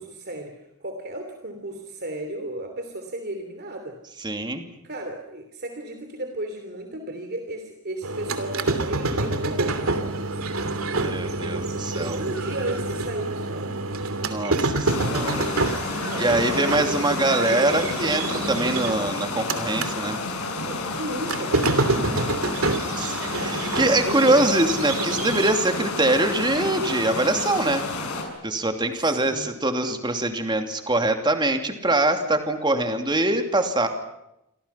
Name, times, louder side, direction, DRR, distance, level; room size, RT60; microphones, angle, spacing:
voice 1, 0.0-4.0 4.8-10.4 11.9-13.8 15.9-17.4 20.4-22.6 23.9-24.6 29.1-29.6, right 1 dB, 45° right, 6 dB, 3.0 m, -35 dB
voice 2, 4.2-4.7 10.9-12.2 14.2-15.5 16.2-20.2 22.7-27.8 28.4-33.9, right 2 dB, 20° right, 6 dB, 2.8 m, -23 dB
sound 1, 8.0-19.9 20.3-25.5, right 2 dB, 65° right, 3.0 m, -27 dB
sound 2, 14.8-28.2, left 3 dB, 85° left, 6.9 m, -30 dB
29.0 x 25.0 x 5.8 m, 0.85 s
head